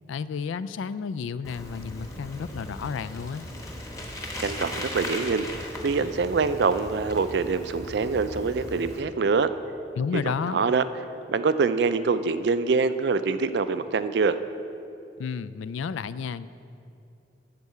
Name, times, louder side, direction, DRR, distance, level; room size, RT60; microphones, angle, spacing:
voice 1, 0.1-3.5 10.0-10.6 15.2-16.5, left 6 dB, 80° left, 15 dB, 0.3 m, -31 dB
Bicycle, 1.4-9.0, left 1 dB, 15° left, 1.0 m, -37 dB
voice 2, 4.4-9.5 10.1-10.2 10.5-10.8 11.3-14.4, right 4 dB, 60° right, 12 dB, 0.4 m, -25 dB
12.0 x 4.7 x 8.3 m, 2.7 s
head